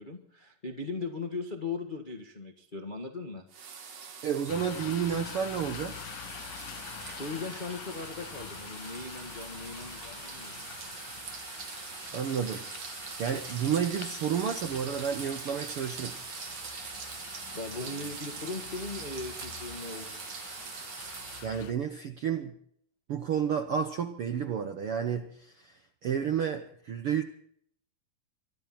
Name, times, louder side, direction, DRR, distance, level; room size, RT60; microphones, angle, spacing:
voice 1, 0.0-3.5 6.8-10.6 17.5-20.4, left 3 dB, 50° left, 3 dB, 0.6 m, -39 dB
sound 1, 3.5-21.5, right 6 dB, 55° right, 2.6 m, -43 dB
voice 2, 4.2-6.0 12.1-12.7 13.2-16.2 21.4-22.5 23.1-27.2, right 8 dB, 70° right, 6 dB, 1.3 m, -31 dB
sound 2, 4.5-21.7, left 12 dB, 80° left, 2.5 m, -46 dB
sound 3, 13.2-19.8, right 7 dB, 90° right, 4.0 m, -53 dB
25.0 x 13.5 x 4.3 m, 0.63 s
omnidirectional pair, 4.0 m